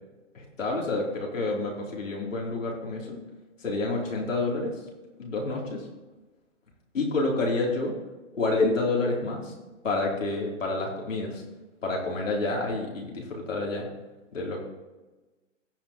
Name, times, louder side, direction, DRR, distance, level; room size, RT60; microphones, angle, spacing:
voice 1, 0.3-3.2 3.6-4.7 5.2-5.8 6.9-7.9 8.3-9.5 9.8-11.4 11.8-13.8 14.3-14.6, left 2 dB, 80° left, -2 dB, 3.4 m, -28 dB
16.5 x 6.2 x 3.0 m, 1.1 s
hypercardioid pair, 140°, 38 cm